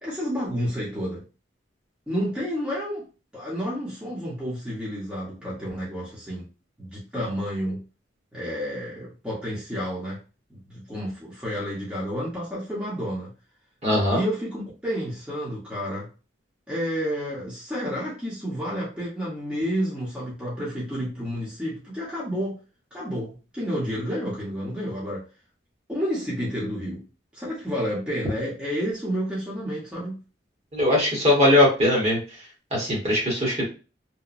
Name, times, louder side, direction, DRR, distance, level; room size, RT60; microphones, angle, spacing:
voice 1, 0.0-1.2 2.1-3.1 3.3-6.5 6.8-7.8 8.3-10.2 10.5-13.3 14.1-16.1 16.7-22.6 22.9-25.3 25.9-27.0 27.3-30.2, equal, 5° right, 0.8 m, -30 dB
voice 2, 13.8-14.2 30.7-32.2 32.7-33.6, left 1 dB, 35° right, 1.0 m, -20 dB
2.9 x 2.1 x 2.4 m
head